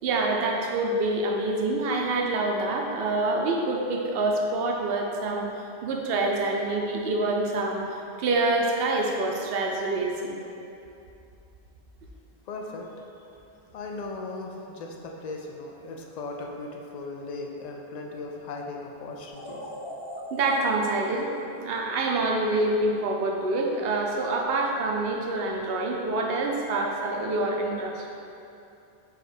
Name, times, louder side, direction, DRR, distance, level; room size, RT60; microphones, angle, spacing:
voice 1, 0.0-10.4 20.3-28.1, right 2 dB, 70° right, 0 dB, 0.8 m, -26 dB
voice 2, 12.5-12.9 13.7-19.6, left 3 dB, 55° left, 0 dB, 0.5 m, -37 dB
sound 1, 19.3-22.5, equal, 70° left, 1.7 m, -41 dB
4.7 x 2.4 x 4.8 m, 2.8 s
omnidirectional pair, 1.1 m